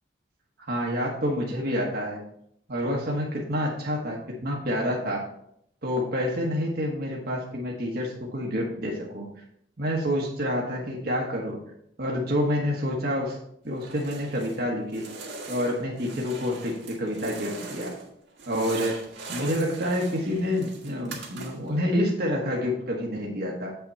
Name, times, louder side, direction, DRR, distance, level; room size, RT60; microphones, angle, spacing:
voice 1, 0.7-2.2 2.7-5.3 5.8-9.3 9.8-11.6 12.0-13.4 13.6-15.1 15.5-17.9 18.4-19.0 19.3-23.7, equal, 55° right, -2 dB, 1.3 m, -28 dB
sound 1, 13.7-14.6 14.9-18.1 18.4-21.8, right 3 dB, 70° right, 1.7 m, -41 dB
7.7 x 5.8 x 4.1 m, 0.72 s
head